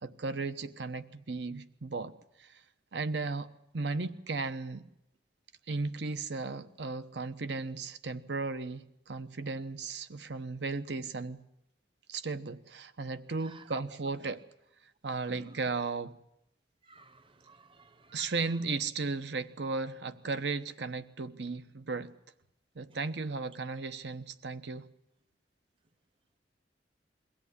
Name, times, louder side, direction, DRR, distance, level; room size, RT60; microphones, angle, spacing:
voice 1, 0.0-2.1 2.4-2.6 2.9-3.5 3.7-4.9 5.7-11.4 12.1-14.4 15.0-16.1 18.1-22.1 22.7-24.9, right 3 dB, 80° right, 1.0 m, -35 dB
voice 2, 13.4-13.8 16.8-18.3, right 6 dB, 30° right, 0.9 m, -54 dB
23.0 x 16.5 x 9.8 m
head